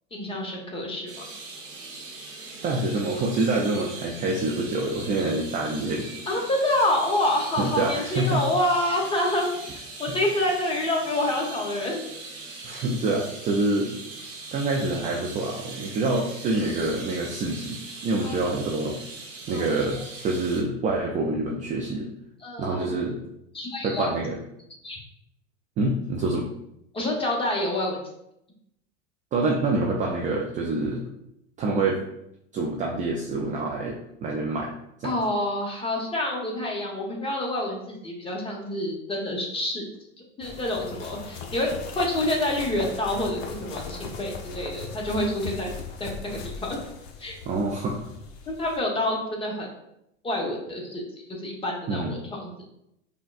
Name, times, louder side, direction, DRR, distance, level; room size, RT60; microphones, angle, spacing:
voice 1, 0.1-1.3 6.3-9.5 10.0-12.0 18.2-18.4 19.5-19.7 22.4-22.9 23.5-24.1 24.8-25.0 26.9-28.1 35.0-39.8 40.4-41.7 41.9-45.7 46.0-46.9 47.2-47.4 48.5-49.7 50.2-51.0 51.3-52.5, left 1 dB, 15° left, -1 dB, 0.9 m, -27 dB
sound 1, 1.1-20.6, right 3 dB, 90° right, 1.1 m, -41 dB
voice 2, 2.6-6.1 7.6-8.4 10.1-10.2 12.6-13.9 14.5-19.0 19.5-22.1 22.6-23.2 23.8-24.4 25.8-26.5 29.3-31.0 31.6-32.0 32.5-34.7 35.0-35.1 47.5-48.1 51.9-52.2, right 2 dB, 20° right, -1 dB, 0.4 m, -26 dB
sound 2, 40.4-48.8, left 5 dB, 45° left, 0.7 m, -39 dB
5.4 x 2.2 x 2.4 m, 0.80 s
hypercardioid pair, 100°, 38 cm